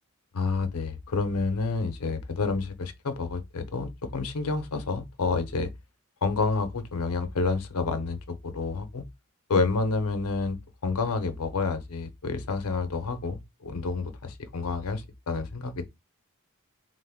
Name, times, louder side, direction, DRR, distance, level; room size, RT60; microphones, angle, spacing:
voice 1, 0.3-5.7 6.2-9.1 9.5-10.6 10.8-15.9, left 4 dB, 85° left, 0.6 m, -29 dB
2.9 x 2.1 x 3.4 m
head